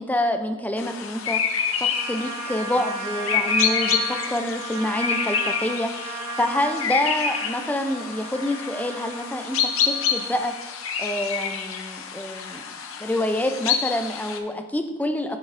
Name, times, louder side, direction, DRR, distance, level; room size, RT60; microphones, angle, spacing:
voice 1, 0.0-1.4 1.8-12.7 13.0-15.4, left 1 dB, 10° left, 7 dB, 0.3 m, -27 dB
sound 1, 0.8-14.4, left 6 dB, 90° left, 0.6 m, -28 dB
Trumpet, 1.9-10.6, right 3 dB, 35° right, 1.7 m, -35 dB
11.0 x 4.1 x 2.5 m, 1.1 s
head